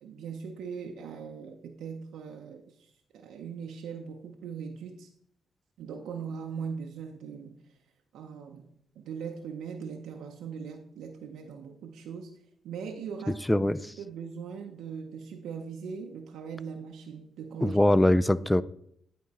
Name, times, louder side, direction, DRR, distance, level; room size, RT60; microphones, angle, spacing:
voice 1, 0.0-5.1 5.8-7.5 8.1-8.7 9.0-12.3 12.6-17.8, right 6 dB, 85° right, 2 dB, 0.6 m, -40 dB
voice 2, 13.5-13.9 17.6-18.6, left 1 dB, 10° left, 17 dB, 0.3 m, -22 dB
10.5 x 3.8 x 4.1 m, 0.69 s
cardioid pair, 70°, 0 cm